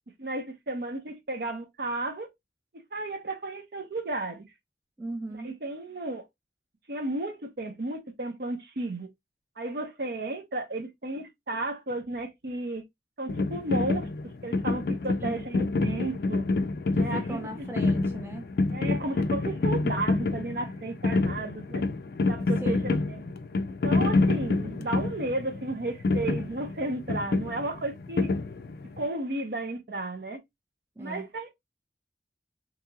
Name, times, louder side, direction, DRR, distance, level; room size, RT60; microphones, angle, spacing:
voice 1, 0.2-2.3 2.7-4.5 5.4-6.3 6.9-9.1 9.6-12.8 13.2-16.5 17.0-17.7 18.7-21.8 22.3-23.2 23.8-28.3 28.8-30.4 31.0-31.5, right 2 dB, 60° right, 0.7 m, -33 dB
voice 2, 5.0-5.5 15.2-15.4 16.9-18.5 22.6-22.9 31.0-31.2, right 2 dB, 15° right, 0.3 m, -37 dB
sound 1, 13.3-29.0, left 3 dB, 60° left, 0.4 m, -28 dB
3.0 x 2.8 x 2.3 m
head